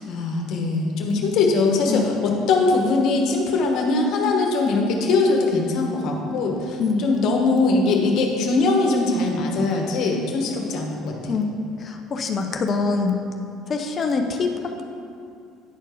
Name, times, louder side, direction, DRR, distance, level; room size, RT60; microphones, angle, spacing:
voice 1, 0.1-11.4, left 3 dB, 65° left, 1 dB, 1.3 m, -21 dB
voice 2, 11.3-13.2 13.7-14.8, left 4 dB, 45° left, 4 dB, 0.7 m, -24 dB
10.0 x 4.5 x 5.1 m, 2.4 s
hypercardioid pair, 70°, 0 cm